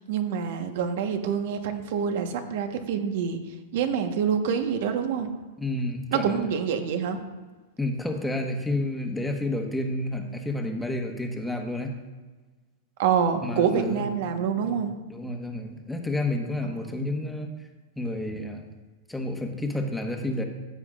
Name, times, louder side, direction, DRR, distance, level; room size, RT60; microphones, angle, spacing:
voice 1, 0.0-3.4 3.7-5.3 6.1-7.2 13.0-15.0 16.7-17.1, right 7 dB, 65° right, 6 dB, 1.2 m, -26 dB
voice 2, 5.6-6.5 7.8-12.0 13.4-14.1 14.6-17.5 18.0-18.7 19.1-20.4, left 1 dB, 5° left, 3 dB, 1.2 m, -30 dB
14.5 x 8.4 x 2.5 m, 1.3 s
hypercardioid pair, 130°, 0 cm